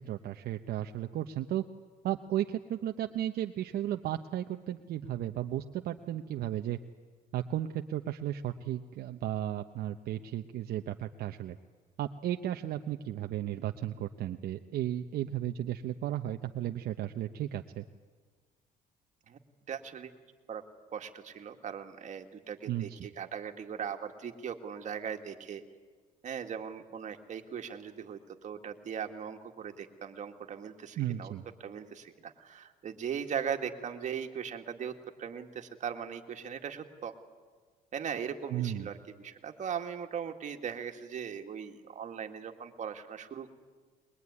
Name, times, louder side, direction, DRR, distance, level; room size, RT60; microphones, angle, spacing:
voice 1, 0.0-1.6 2.0-6.8 7.3-11.6 12.0-17.8 22.7-22.9 31.0-31.4 38.5-38.9, right 12 dB, 65° right, 6 dB, 0.9 m, -34 dB
voice 2, 19.7-20.1 20.5-20.6 20.9-25.6 26.2-31.3 31.6-37.1 37.9-43.5, right 7 dB, 45° right, 4 dB, 2.1 m, -39 dB
22.0 x 21.5 x 9.7 m, 1.5 s
cardioid pair, 110°, 17 cm